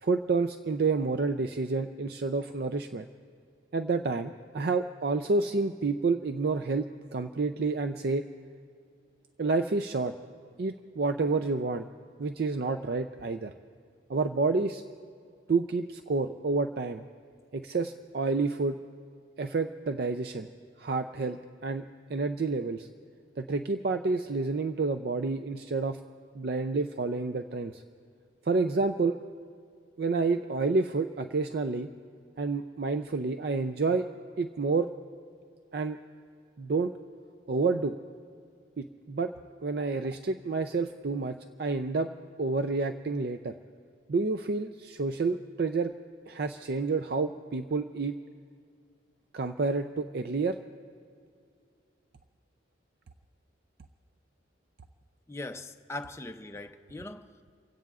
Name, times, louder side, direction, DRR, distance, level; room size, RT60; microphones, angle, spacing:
voice 1, 0.0-3.1 3.7-8.2 9.4-10.1 10.6-11.9 12.2-13.5 14.1-14.8 15.5-17.0 17.5-18.8 19.4-20.5 20.8-21.8 22.1-22.9 23.4-26.0 26.4-27.8 28.4-29.2 30.0-31.9 32.4-34.0 34.4-34.9 35.7-36.0 36.6-36.9 37.5-38.0 38.8-39.3 39.6-42.1 42.4-43.5 44.1-45.9 46.3-48.2 49.3-50.6, right 3 dB, 55° right, 0.4 m, -29 dB
voice 2, 55.3-57.6, left 2 dB, 15° left, 0.5 m, -41 dB
29.0 x 16.5 x 2.4 m
head